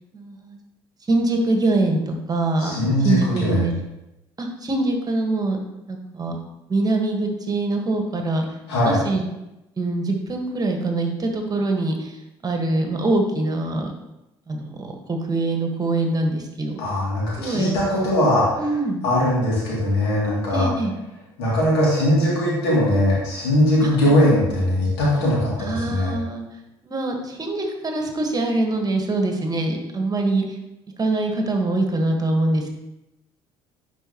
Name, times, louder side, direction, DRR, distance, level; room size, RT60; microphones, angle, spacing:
voice 1, 0.1-0.6 1.1-3.7 4.4-5.6 5.9-6.4 6.7-8.4 8.8-9.2 9.8-12.2 12.4-13.9 14.5-16.8 17.4-17.8 18.6-19.1 20.5-20.9 25.6-26.4 26.8-30.4 31.0-32.7, right 2 dB, 30° right, 3 dB, 1.4 m, -23 dB
voice 2, 2.6-3.6 8.7-9.0 16.8-18.7 19.0-20.7 21.4-26.2, left 1 dB, 80° left, -5 dB, 2.7 m, -20 dB
11.0 x 4.5 x 3.0 m, 0.94 s
hypercardioid pair, 60°, 13 cm